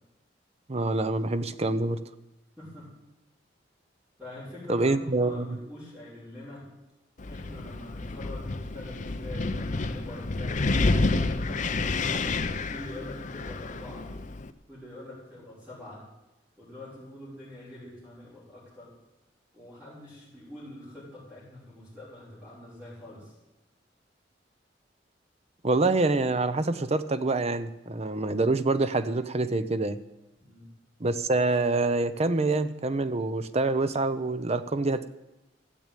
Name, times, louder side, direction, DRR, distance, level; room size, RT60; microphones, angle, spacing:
voice 1, 0.7-2.0 4.7-5.6 25.6-30.0 31.0-35.1, right 2 dB, 35° right, 12 dB, 0.7 m, -26 dB
voice 2, 2.6-2.9 4.2-6.7 7.3-14.1 14.7-16.0 16.6-18.9 19.5-23.3 30.4-30.7, left 1 dB, 5° right, -12 dB, 6.1 m, -44 dB
Wind, 7.2-14.5, left 3 dB, 45° left, 0.7 m, -29 dB
14.0 x 7.7 x 9.1 m, 1.0 s
head